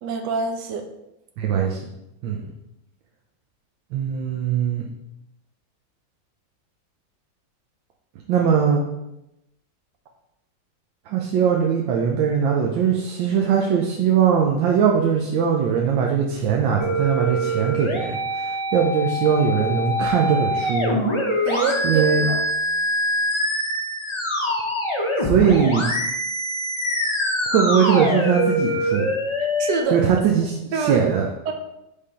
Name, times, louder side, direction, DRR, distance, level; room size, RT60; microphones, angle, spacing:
voice 1, 0.0-0.9 21.5-22.4 29.6-30.0 30.7-31.1 31.5-31.6, right 4 dB, 70° right, 4 dB, 1.3 m, -25 dB
voice 2, 1.4-1.8 2.2-2.5 3.9-4.8 8.3-8.8 11.1-21.0 21.8-22.3 25.2-25.9 27.5-29.1 29.9-31.3, right 7 dB, 85° right, 0 dB, 1.4 m, -20 dB
sound 1, 16.8-29.8, equal, 35° left, 0.5 m, -24 dB
5.2 x 3.3 x 5.6 m, 0.88 s
omnidirectional pair, 2.0 m